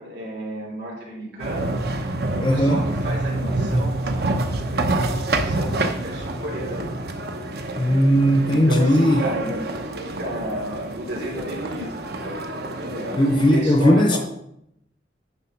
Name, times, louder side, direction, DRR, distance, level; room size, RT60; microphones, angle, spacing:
voice 1, 0.0-1.7 2.3-6.9 8.5-9.6 10.0-12.4 12.7-13.2 13.5-14.2, equal, 75° right, 3.4 m, -32 dB
sound 1, 1.4-13.6, right 2 dB, 55° right, 0.8 m, -27 dB
voice 2, 2.4-2.8 7.8-9.3 13.2-14.2, equal, 25° left, 0.6 m, -17 dB
10.0 x 3.9 x 5.8 m
head